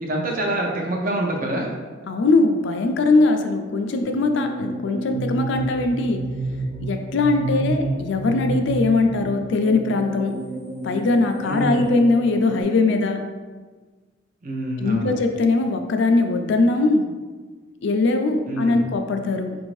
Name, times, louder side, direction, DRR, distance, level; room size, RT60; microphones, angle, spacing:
voice 1, 0.0-1.7 7.5-8.0 11.4-11.8 14.4-15.2 18.5-18.9, right 1 dB, 45° right, 0 dB, 0.7 m, -26 dB
voice 2, 2.1-6.2 6.8-10.3 10.8-13.2 14.8-17.0 17.8-19.6, left 3 dB, 65° left, 5 dB, 0.4 m, -20 dB
sound 1, 4.0-12.6, right 2 dB, 80° right, 0.8 m, -30 dB
5.0 x 2.6 x 3.1 m, 1.4 s
head